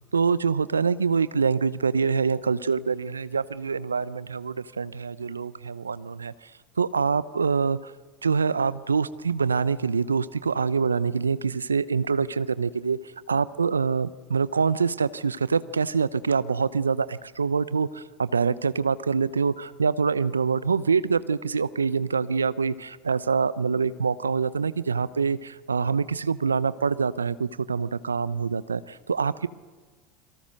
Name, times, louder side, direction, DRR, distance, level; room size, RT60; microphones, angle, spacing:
voice 1, 0.1-6.3 6.8-7.9 8.2-13.0 13.3-29.5, right 5 dB, 90° right, 17 dB, 0.7 m, -25 dB
29.5 x 23.0 x 6.5 m, 1.3 s
hypercardioid pair, 75°, 0 cm